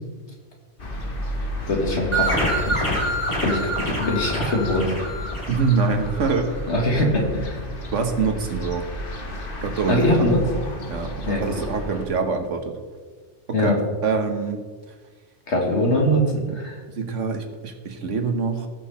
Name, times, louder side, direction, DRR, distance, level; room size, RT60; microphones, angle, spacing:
sound 1, 0.8-12.1, left 1 dB, 50° left, 1.6 m, -32 dB
voice 1, 1.7-3.0 3.4-4.9 6.7-7.6 9.9-10.4 11.2-11.4 13.5-13.8 15.5-16.8, left 1 dB, 65° left, 0 dB, 2.3 m, -22 dB
sound 2, 2.1-6.4, right 1 dB, 25° left, 2.9 m, -27 dB
voice 2, 5.5-6.5 7.9-8.9 9.6-10.3 10.9-12.8 13.5-14.6 17.0-18.7, right 5 dB, 80° right, 6 dB, 1.5 m, -25 dB
18.0 x 6.1 x 4.2 m, 1.5 s
omnidirectional pair, 1.2 m